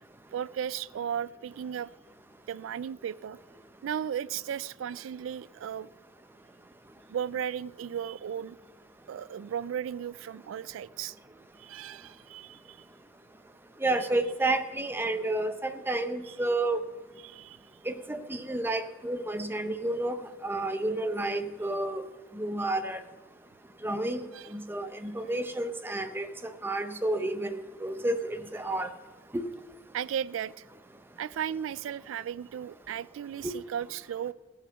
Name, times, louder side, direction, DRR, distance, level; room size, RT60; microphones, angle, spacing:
voice 1, 0.3-1.9 2.5-3.4 3.8-5.9 7.1-8.6 9.1-11.1 11.6-12.8 17.2-17.6 24.3-24.5 29.9-30.6 31.2-34.3, right 9 dB, 75° right, 20 dB, 0.3 m, -35 dB
voice 2, 13.8-16.8 17.9-22.0 22.4-23.0 23.8-26.3 26.6-28.9 29.3-29.4 33.4-33.5, right 2 dB, 10° right, 9 dB, 0.7 m, -30 dB
17.0 x 6.3 x 6.9 m, 1.2 s
head